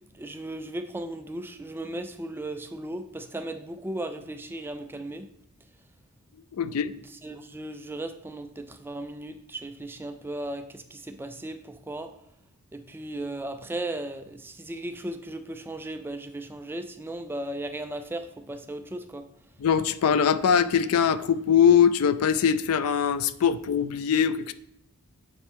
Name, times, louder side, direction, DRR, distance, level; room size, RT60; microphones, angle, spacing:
voice 1, 0.1-5.3 6.7-6.8 7.2-12.1 12.7-19.3, right 1 dB, 10° right, 8 dB, 0.3 m, -36 dB
voice 2, 6.6-6.9 19.6-24.5, left 7 dB, 70° left, 14 dB, 0.4 m, -22 dB
8.4 x 4.3 x 3.6 m, 0.77 s
head